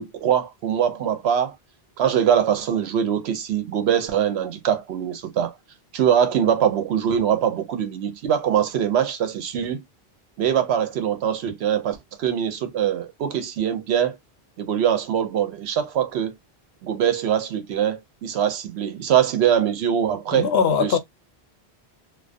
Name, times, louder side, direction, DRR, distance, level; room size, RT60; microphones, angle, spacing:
voice 1, 0.0-1.5 2.0-5.5 5.9-9.8 10.4-14.2 14.6-16.4 16.8-20.5 20.8-21.0, right 9 dB, 85° right, 0.9 m, -23 dB
voice 2, 20.3-21.0, left 6 dB, 75° left, 0.8 m, -20 dB
2.3 x 2.3 x 2.4 m
omnidirectional pair, 1.1 m